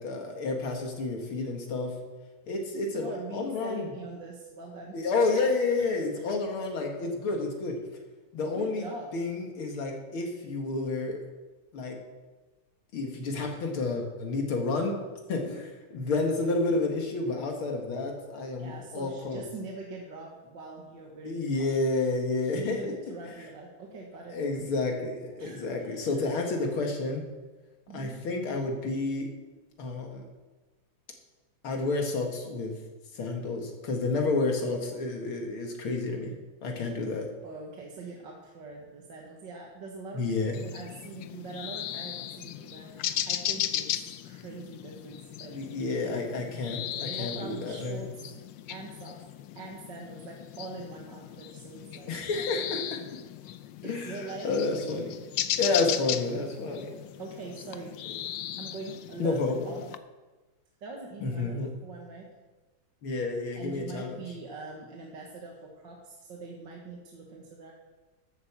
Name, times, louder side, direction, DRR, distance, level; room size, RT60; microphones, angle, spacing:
voice 1, 0.0-1.9 2.5-3.9 4.9-7.8 8.3-8.8 9.1-11.2 11.7-12.0 12.9-14.9 15.3-15.4 15.9-19.4 21.2-22.9 23.4-23.5 24.3-27.2 27.9-29.3 29.8-30.2 31.6-32.7 33.1-36.3 36.6-37.2 40.1-40.6 45.5-48.0 52.1-53.0 53.8-55.2 55.6-56.9 59.2-59.7 61.2-61.7 63.0-64.2, left 3 dB, 90° left, 2 dB, 2.7 m, -30 dB
voice 2, 2.9-5.0 5.3-5.4 5.8-6.3 8.4-9.2 15.4-15.6 18.6-21.7 22.5-24.4 25.4-26.2 27.9-28.2 37.4-40.3 40.5-46.0 47.1-48.1 48.7-49.2 49.6-52.6 53.8-54.6 55.8-56.0 57.2-58.0 58.6-59.4 59.7-59.9 60.8-62.3 63.6-67.7, right 3 dB, 60° right, -1 dB, 2.1 m, -43 dB
sound 1, 40.5-60.0, left 11 dB, 75° left, 1.3 m, -37 dB
13.0 x 8.6 x 7.4 m, 1.2 s
omnidirectional pair, 2.2 m